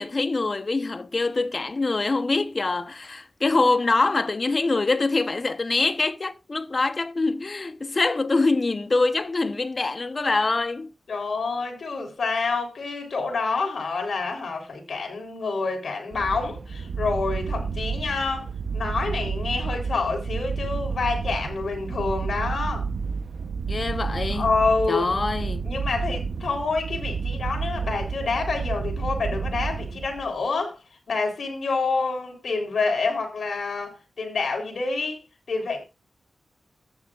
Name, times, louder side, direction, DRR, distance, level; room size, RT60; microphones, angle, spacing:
voice 1, 0.0-10.9 23.7-24.5 24.9-25.6, left 3 dB, 50° left, 1.0 m, -24 dB
voice 2, 11.1-22.9 24.3-25.1 25.7-30.8 31.1-35.8, left 4 dB, 75° left, 3.8 m, -27 dB
sound 1, 16.1-30.4, right 5 dB, 75° right, 0.9 m, -30 dB
14.0 x 9.6 x 2.5 m
cardioid pair, 40°, 0 cm